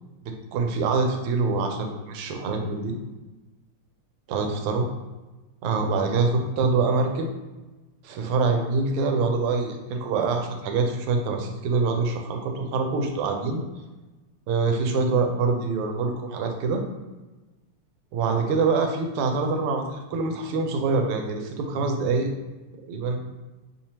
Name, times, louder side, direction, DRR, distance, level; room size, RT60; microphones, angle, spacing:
voice 1, 0.2-2.9 4.3-4.8 5.6-7.3 8.0-13.6 14.5-16.8 18.1-22.3 22.9-23.2, right 4 dB, 85° right, 3 dB, 1.5 m, -25 dB
3.6 x 2.9 x 2.8 m, 1.1 s
omnidirectional pair, 2.4 m